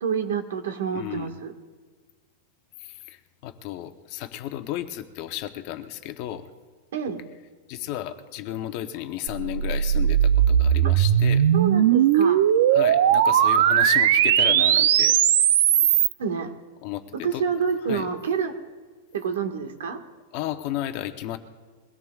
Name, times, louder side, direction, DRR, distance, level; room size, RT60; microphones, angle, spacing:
voice 1, 0.0-1.5 6.9-7.2 11.5-12.4 15.7-15.9 16.2-16.5 17.2-18.6 19.1-20.0, right 6 dB, 80° right, 6 dB, 1.6 m, -28 dB
voice 2, 0.9-1.3 2.8-6.5 7.7-11.4 12.7-15.2 16.8-17.4 17.9-18.1 20.3-21.4, left 13 dB, 35° left, 8 dB, 0.8 m, -33 dB
sound 1, 9.3-16.1, right 10 dB, 60° right, 0.5 m, -19 dB
23.0 x 17.0 x 2.4 m, 1.5 s
supercardioid pair, 170°, 0 cm